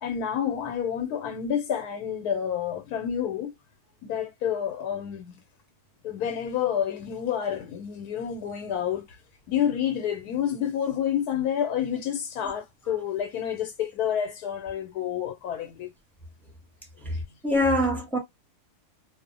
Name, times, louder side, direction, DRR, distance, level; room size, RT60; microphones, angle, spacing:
voice 1, 0.0-3.5 4.0-5.4 6.0-9.0 9.5-15.9, left 9 dB, 90° left, 1.1 m, -29 dB
voice 2, 17.0-18.2, left 1 dB, 5° left, 0.3 m, -24 dB
2.6 x 2.0 x 2.6 m
omnidirectional pair, 1.6 m